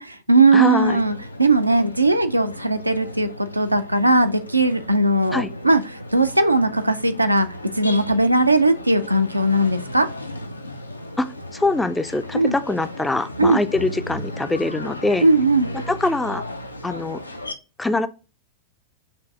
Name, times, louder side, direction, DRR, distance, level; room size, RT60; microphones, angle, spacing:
voice 1, 0.0-5.8 6.1-7.5 7.8-10.1 12.3-12.5 13.4-13.6 15.2-15.7, right 2 dB, 85° right, 0.3 m, -18 dB
voice 2, 0.5-1.0 5.3-5.5 11.2-15.3 15.7-16.4 16.8-17.2 17.8-18.1, left 2 dB, 10° left, 0.3 m, -23 dB
sound 1, 0.8-17.5, left 1 dB, 85° left, 0.4 m, -35 dB
6.8 x 2.6 x 2.3 m
figure-of-eight pair, 90°, 0 cm